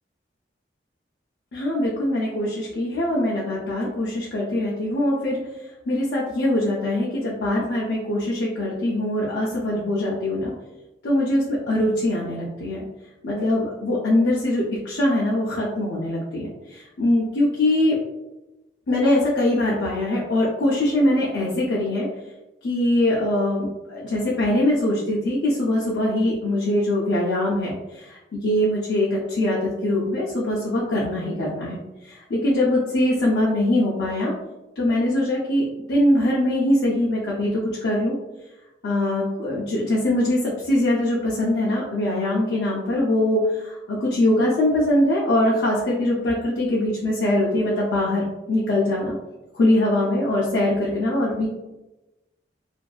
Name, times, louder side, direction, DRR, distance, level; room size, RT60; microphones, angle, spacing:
voice 1, 1.5-5.4 5.9-10.5 11.0-12.8 13.2-18.0 18.9-22.1 22.6-31.8 32.0-34.3 34.8-38.2 38.8-49.1 49.5-51.5, left 1 dB, 75° left, -5 dB, 0.5 m, -22 dB
2.6 x 2.3 x 2.3 m, 1.0 s
head